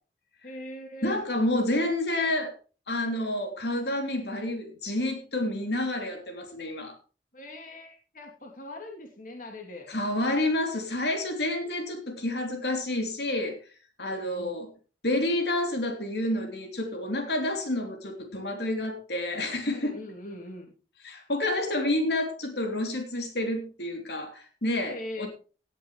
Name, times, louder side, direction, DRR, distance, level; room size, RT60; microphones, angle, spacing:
voice 1, 0.4-1.2 7.3-9.9 14.1-14.6 19.7-20.7 24.8-25.3, left 1 dB, 50° left, 3.0 m, -41 dB
voice 2, 1.0-2.5 2.9-7.0 9.9-13.6 14.0-14.7 15.0-20.0 21.0-25.3, left 1 dB, 65° left, 3.1 m, -29 dB
18.0 x 10.5 x 3.2 m
head